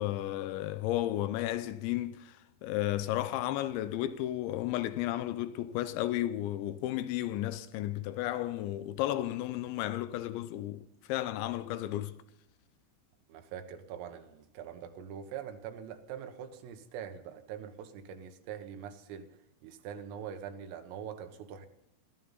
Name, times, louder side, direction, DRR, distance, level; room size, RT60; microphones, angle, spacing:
voice 1, 0.0-12.2, left 14 dB, 80° left, 2.7 m, -33 dB
voice 2, 13.3-19.3 19.6-21.7, right 8 dB, 80° right, 3.9 m, -43 dB
23.0 x 15.0 x 4.1 m
omnidirectional pair, 5.9 m